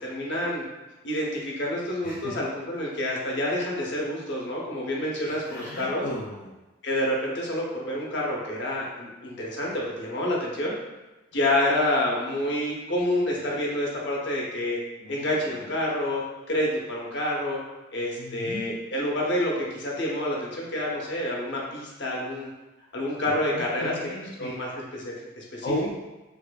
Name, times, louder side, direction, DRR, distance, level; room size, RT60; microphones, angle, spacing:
voice 1, 0.0-0.6 1.0-6.1 6.8-10.7 11.3-14.8 15.1-16.2 16.5-17.6 17.9-22.5 22.9-23.9 24.4-25.7, left 1 dB, 60° left, -2 dB, 0.8 m, -28 dB
voice 2, 5.2-6.6 15.0-15.3 18.2-18.8 23.5-24.5 25.6-25.9, left 1 dB, 40° left, -3 dB, 0.3 m, -34 dB
4.4 x 2.5 x 2.2 m, 1.1 s
head